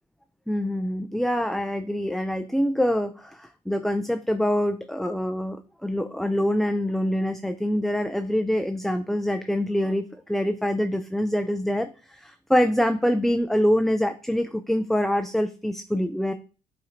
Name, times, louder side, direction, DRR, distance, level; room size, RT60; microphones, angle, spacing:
voice 1, 0.5-16.3, equal, ahead, 8 dB, 0.3 m, -25 dB
8.6 x 4.3 x 2.6 m, 0.37 s
cardioid pair, 110°, 17 cm